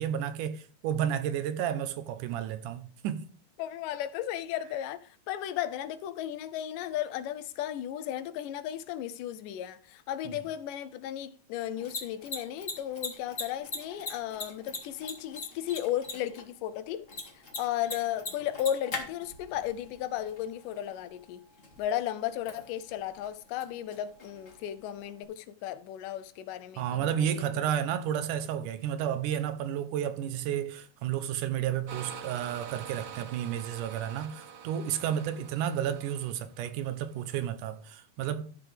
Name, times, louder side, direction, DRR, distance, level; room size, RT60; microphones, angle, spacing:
voice 1, 0.0-3.3 26.8-38.5, right 10 dB, 80° right, 2.3 m, -32 dB
voice 2, 3.6-17.0 17.6-21.4 21.8-27.6, left 11 dB, 90° left, 2.3 m, -35 dB
Mechanisms, 11.6-25.2, left 3 dB, 30° left, 1.8 m, -43 dB
sound 1, 31.9-37.3, right 7 dB, 65° right, 1.3 m, -46 dB
13.5 x 7.0 x 3.4 m
omnidirectional pair, 3.7 m